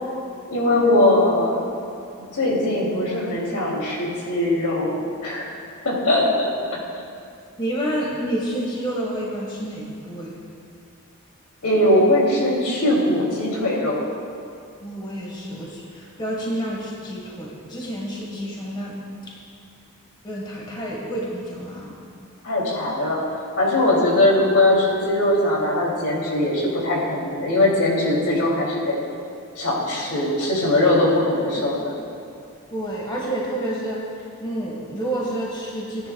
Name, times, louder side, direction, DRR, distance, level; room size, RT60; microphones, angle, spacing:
voice 1, 0.5-1.6 2.3-5.5 5.8-6.8 11.6-14.0 22.4-23.2 23.6-29.0 29.6-31.9, left 1 dB, 75° left, -4 dB, 2.8 m, -20 dB
voice 2, 7.6-10.3 14.8-19.0 19.2-19.3 20.2-22.0 32.7-36.1, right 1 dB, 20° left, -4 dB, 1.5 m, -29 dB
17.5 x 10.5 x 2.3 m, 2.5 s
head